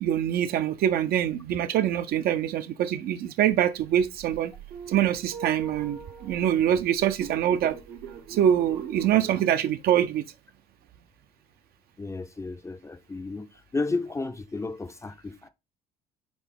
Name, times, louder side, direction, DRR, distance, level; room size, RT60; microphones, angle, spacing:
voice 1, 0.0-4.5 4.9-7.8 8.3-10.3, right 10 dB, 50° right, 0.5 m, -24 dB
sound 1, 3.9-9.4, right 7 dB, 70° right, 0.9 m, -42 dB
voice 2, 12.0-15.5, left 3 dB, 15° left, 0.5 m, -33 dB
4.0 x 3.9 x 3.5 m
hypercardioid pair, 55°, 20 cm